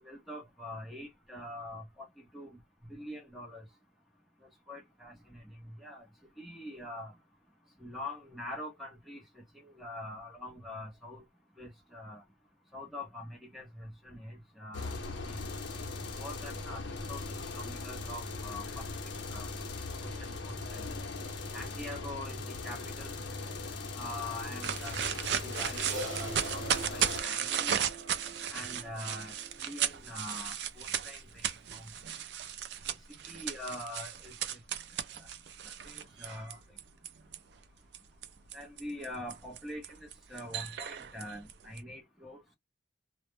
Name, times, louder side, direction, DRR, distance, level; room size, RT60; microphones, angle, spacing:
voice 1, 0.0-2.1 2.3-2.6 2.9-3.6 4.7-5.4 5.8-6.0 6.4-7.1 7.8-11.2 11.6-12.2 12.7-15.0 15.3-15.4 16.1-16.8 17.1-18.8 19.3-19.5 20.0-20.9 21.5-23.2 23.9-25.0 25.4-27.8 28.5-31.9 32.9-33.0 33.2-34.6 35.2-35.3 35.8-35.9 36.2-36.6 38.5-42.4, left 1 dB, ahead, 0.6 m, -44 dB
sound 1, 14.7-27.2, left 3 dB, 70° left, 0.6 m, -39 dB
sound 2, 24.6-37.4 37.9-41.8, right 9 dB, 55° right, 0.4 m, -35 dB
Crash cymbal, 25.9-30.5, right 2 dB, 80° right, 0.9 m, -43 dB
2.1 x 2.0 x 3.0 m
head